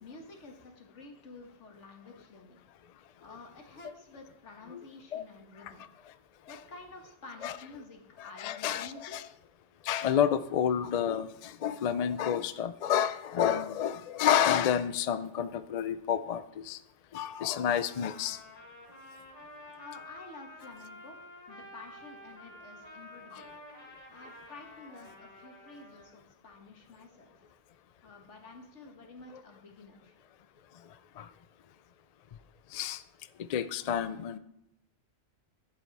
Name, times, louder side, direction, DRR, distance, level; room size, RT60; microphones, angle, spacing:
voice 1, 0.0-2.6 3.2-5.9 6.5-9.2 19.8-21.2 21.5-23.4 24.1-27.5 28.0-30.2, left 3 dB, 80° left, 3 dB, 1.8 m, -50 dB
voice 2, 8.4-9.3 9.8-16.8 17.1-18.4 23.3-23.4 31.2-31.3 32.7-33.0 33.4-34.4, left 9 dB, 55° left, 13 dB, 0.4 m, -29 dB
Trumpet, 17.7-26.1, left 1 dB, 35° left, 2.6 m, -50 dB
11.5 x 7.6 x 4.1 m, 0.81 s
omnidirectional pair, 1.2 m